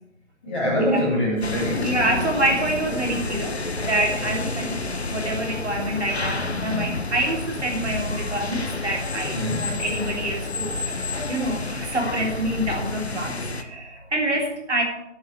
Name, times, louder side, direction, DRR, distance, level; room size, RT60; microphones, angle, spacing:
voice 1, 0.4-1.9 9.2-9.8, equal, 10° left, -9 dB, 2.4 m, -24 dB
sound 1, 1.4-13.6, left 3 dB, 55° left, 1.2 m, -30 dB
voice 2, 1.8-4.8 5.1-14.8, right 1 dB, 65° right, 0 dB, 3.4 m, -26 dB
9.5 x 7.9 x 7.2 m, 0.84 s
figure-of-eight pair, 175°, 38 cm